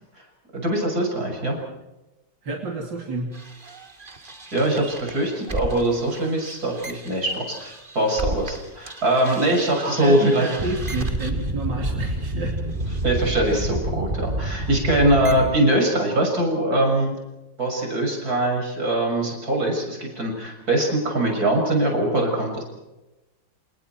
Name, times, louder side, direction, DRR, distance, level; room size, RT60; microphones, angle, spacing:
voice 1, 0.5-1.6 4.5-10.5 13.0-17.2 17.6-22.6, right 1 dB, 55° right, 1 dB, 7.0 m, -22 dB
voice 2, 2.4-3.3 9.8-12.5, right 3 dB, 85° right, 1 dB, 3.5 m, -29 dB
sound 1, 3.3-8.6 8.9-15.6, right 1 dB, 30° right, 2.5 m, -30 dB
29.0 x 29.0 x 4.6 m, 1.0 s
omnidirectional pair, 1.9 m